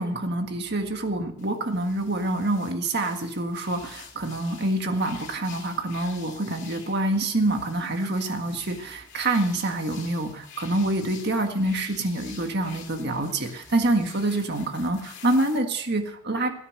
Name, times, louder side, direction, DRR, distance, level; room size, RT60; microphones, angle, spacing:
voice 1, 0.0-16.5, right 2 dB, 50° right, 5 dB, 1.7 m, -26 dB
sound 1, 1.4-15.6, left 7 dB, 50° left, 2.9 m, -47 dB
18.0 x 10.0 x 6.6 m, 0.70 s
head